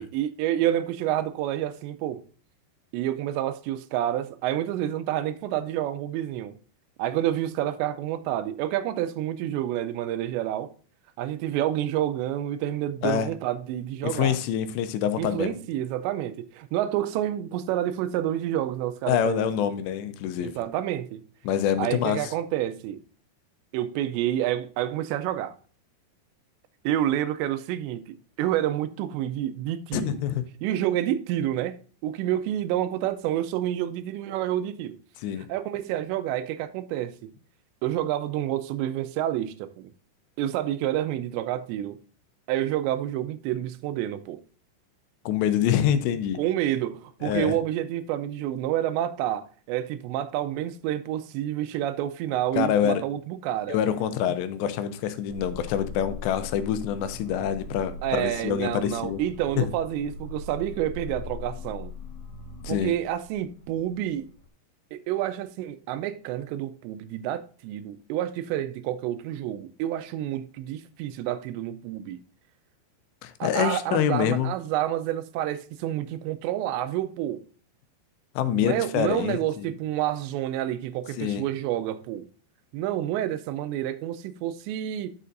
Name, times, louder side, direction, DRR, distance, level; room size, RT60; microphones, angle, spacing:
voice 1, 0.0-2.2 2.9-6.6 7.0-10.7 11.2-14.4 15.2-19.5 20.4-21.2 21.8-23.0 23.7-25.6 26.8-30.2 30.6-31.8 32.0-35.0 35.4-37.3 37.8-39.9 40.4-42.0 42.5-44.4 46.4-53.8 54.3-54.4 58.0-61.9 62.7-64.3 64.9-72.2 73.4-77.4 78.5-82.3 82.7-85.1, right 12 dB, 90° right, 2.9 m, -29 dB
voice 2, 14.0-15.6 19.1-20.5 21.4-22.2 29.9-30.4 35.2-35.5 45.3-46.4 47.2-47.6 52.6-53.0 53.7-59.2 59.6-59.7 62.6-62.9 73.2-74.5 78.4-79.7 81.2-81.4, left 9 dB, 90° left, 2.9 m, -26 dB
sound 1, 55.3-64.5, left 4 dB, 50° left, 2.4 m, -40 dB
9.7 x 6.7 x 2.6 m
omnidirectional pair, 5.0 m